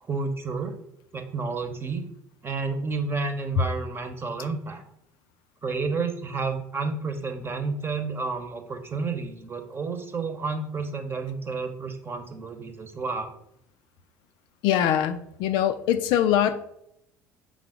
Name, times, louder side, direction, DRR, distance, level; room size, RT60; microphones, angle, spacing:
voice 1, 0.0-0.7 1.1-2.0 2.4-4.8 5.6-13.3, right 4 dB, 25° right, 7 dB, 1.0 m, -30 dB
voice 2, 14.6-16.6, left 10 dB, 55° left, 10 dB, 0.4 m, -23 dB
5.5 x 3.9 x 4.8 m, 0.74 s
figure-of-eight pair, 60°, 9 cm